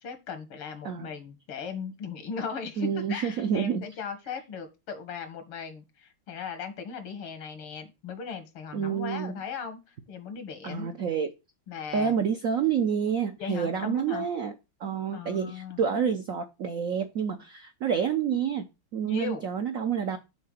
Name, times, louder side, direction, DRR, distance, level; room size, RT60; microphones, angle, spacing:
voice 1, 0.0-10.9 11.7-12.1 13.4-14.3 15.1-15.8 19.0-19.4, left 6 dB, 85° left, 2.3 m, -37 dB
voice 2, 2.8-3.9 8.7-9.3 10.6-11.3 11.9-14.5 14.8-20.2, right 7 dB, 80° right, 0.7 m, -28 dB
6.8 x 3.8 x 6.3 m
omnidirectional pair, 2.3 m